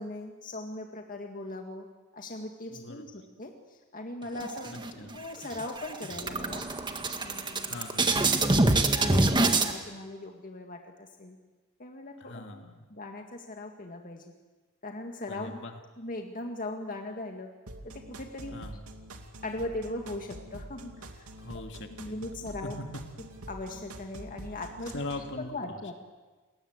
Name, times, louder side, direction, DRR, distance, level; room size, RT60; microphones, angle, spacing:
voice 1, 0.0-1.9 2.1-6.6 7.2-7.7 8.0-11.4 11.8-12.6 12.9-14.2 14.8-15.6 16.0-17.5 17.8-18.5 19.4-21.3 21.9-22.8 23.5-25.0 25.4-26.0, left 2 dB, 40° left, 3 dB, 2.0 m, -39 dB
voice 2, 2.7-3.2 5.0-5.1 7.6-8.7 12.2-12.8 15.3-15.8 18.5-18.8 21.4-22.2 24.9-25.8, left 2 dB, 55° left, 5 dB, 2.5 m, -42 dB
sound 1, 4.4-5.1 5.5-5.6 5.9-9.7, right 2 dB, 20° right, 1.8 m, -25 dB
sound 2, 17.7-25.3, right 1 dB, 85° right, 2.5 m, -46 dB
28.5 x 21.5 x 8.2 m, 1.3 s
head